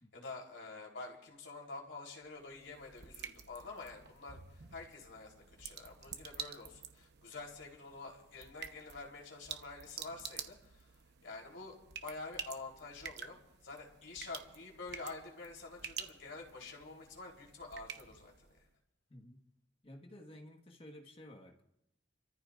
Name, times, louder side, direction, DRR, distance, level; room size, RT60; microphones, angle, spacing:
voice 1, 0.1-11.0 11.2-13.4 13.6-18.7, left 3 dB, 80° left, -1 dB, 3.7 m, -48 dB
sound 1, 2.2-18.7, right 8 dB, 60° right, 1.0 m, -50 dB
voice 2, 19.1-19.4 19.8-21.6, left 1 dB, 30° left, 3 dB, 1.5 m, -53 dB
29.5 x 14.5 x 2.6 m, 0.84 s
head